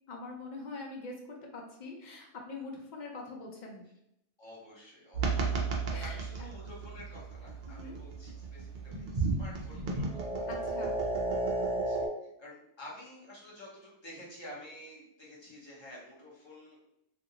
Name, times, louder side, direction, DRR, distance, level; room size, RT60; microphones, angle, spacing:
voice 1, 0.1-3.9 5.3-5.4 5.9-6.5 7.7-8.0 10.5-11.0, left 3 dB, 60° left, 1 dB, 0.5 m, -44 dB
voice 2, 4.4-10.5 11.8-16.8, left 1 dB, 25° left, -6 dB, 0.8 m, -50 dB
sound 1, 5.1-12.1, right 3 dB, 60° right, 0.6 m, -33 dB
2.5 x 2.4 x 2.7 m, 0.81 s
omnidirectional pair, 1.2 m